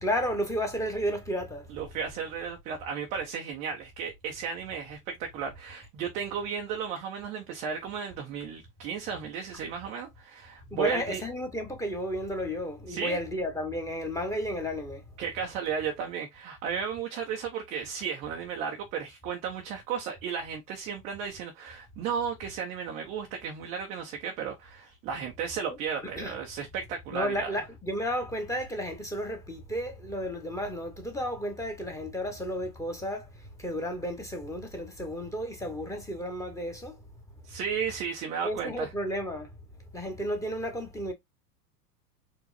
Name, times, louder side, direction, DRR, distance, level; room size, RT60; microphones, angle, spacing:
voice 1, 0.0-1.7 10.7-15.0 26.2-26.3 27.1-37.0 38.4-39.5 39.9-41.1, equal, 5° left, 1.0 m, -32 dB
voice 2, 1.7-11.2 12.9-13.2 15.2-27.5 37.5-38.9, right 7 dB, 15° right, 0.3 m, -34 dB
4.4 x 3.1 x 2.5 m
hypercardioid pair, 100°, 49 cm